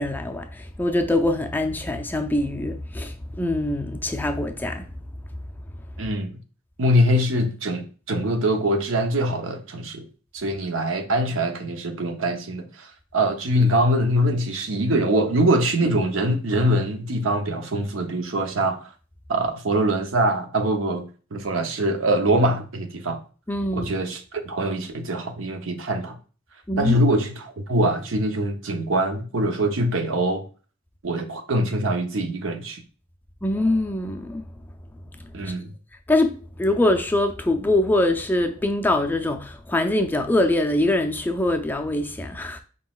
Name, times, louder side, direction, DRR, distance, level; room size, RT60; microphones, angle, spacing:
voice 1, 0.0-4.9 23.5-23.9 26.7-27.0 33.4-34.4 35.1-35.5 36.1-42.6, left 1 dB, 10° left, 0.3 m, -23 dB
voice 2, 6.0-6.4 6.8-10.0 10.3-18.9 19.3-21.0 21.3-23.2 23.7-26.2 26.8-30.5 31.0-32.8 35.3-35.7, right 1 dB, 80° right, 0.7 m, -23 dB
5.1 x 3.8 x 2.3 m
head